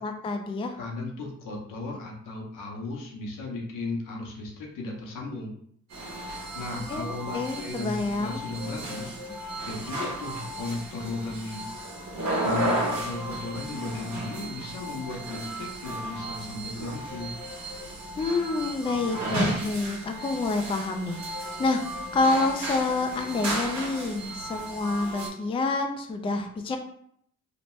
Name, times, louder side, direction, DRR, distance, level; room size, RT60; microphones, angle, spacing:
voice 1, 0.0-0.8 6.9-7.1 7.3-8.4 18.2-21.8 22.1-26.8, left 3 dB, 20° left, 5 dB, 0.3 m, -28 dB
voice 2, 0.8-5.5 6.5-9.1 9.6-11.6 12.4-17.3, left 2 dB, 80° left, 0 dB, 0.8 m, -35 dB
sound 1, 5.9-25.3, right 1 dB, 60° right, 1.2 m, -34 dB
2.9 x 2.1 x 3.0 m, 0.67 s
cardioid pair, 85°, 31 cm